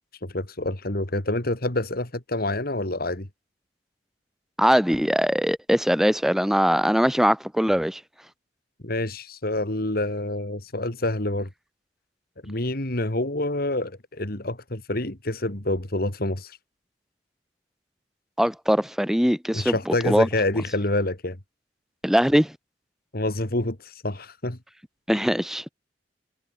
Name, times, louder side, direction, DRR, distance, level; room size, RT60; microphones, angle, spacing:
voice 1, 0.2-3.3 8.8-11.5 12.4-16.6 19.5-21.4 23.1-24.6, left 2 dB, 55° left, 2.9 m, -27 dB
voice 2, 4.6-8.0 18.4-20.3 22.0-22.5 25.1-25.6, equal, ahead, 1.2 m, -21 dB
head